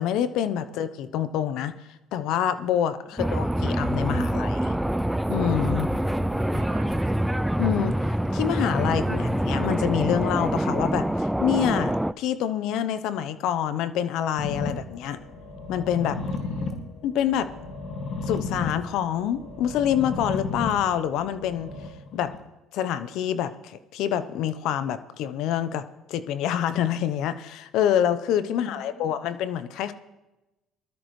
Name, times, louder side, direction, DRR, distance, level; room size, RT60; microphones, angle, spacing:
voice 1, 0.0-1.7 2.1-4.8 5.3-5.9 7.6-15.2 15.7-16.2 17.0-17.5 18.3-21.7 22.1-22.3 22.7-29.9, left 10 dB, 70° left, 13 dB, 0.9 m, -26 dB
sound 1, 3.2-12.1, right 1 dB, 5° right, 0.4 m, -25 dB
voice 2, 6.0-7.1 16.2-16.8 28.5-29.1, right 1 dB, 75° right, -3 dB, 3.6 m, -45 dB
sound 2, 14.4-22.4, left 3 dB, 50° left, 2.0 m, -34 dB
20.5 x 13.0 x 3.2 m, 1.0 s
hypercardioid pair, 65°, 0 cm